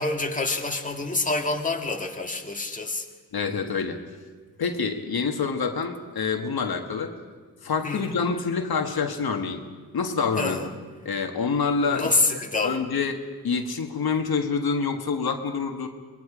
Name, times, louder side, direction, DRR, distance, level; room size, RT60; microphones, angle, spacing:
voice 1, 0.0-3.1 7.8-8.1 10.4-10.7 11.9-12.8, left 3 dB, 20° left, 2 dB, 1.8 m, -27 dB
voice 2, 3.3-4.0 4.6-7.1 7.6-9.6 9.9-10.6 11.1-15.9, left 5 dB, 70° left, 4 dB, 1.6 m, -27 dB
25.0 x 21.0 x 5.0 m, 1.5 s
wide cardioid pair, 90°, 38 cm